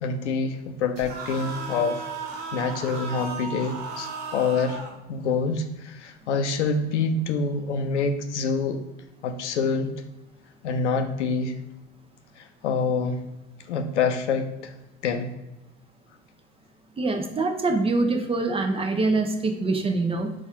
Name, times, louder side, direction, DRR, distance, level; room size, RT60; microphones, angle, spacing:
voice 1, 0.0-2.0 2.5-4.8 5.1-8.8 9.2-9.9 10.6-11.5 12.4-13.2 13.7-14.7 15.0-15.3, left 4 dB, 90° left, 7 dB, 0.5 m, -26 dB
sound 1, 1.0-5.0, right 4 dB, 55° right, 0.9 m, -35 dB
voice 2, 17.0-20.3, right 3 dB, 15° right, 5 dB, 0.5 m, -24 dB
4.1 x 2.4 x 4.2 m, 0.99 s
hypercardioid pair, 75°, 34 cm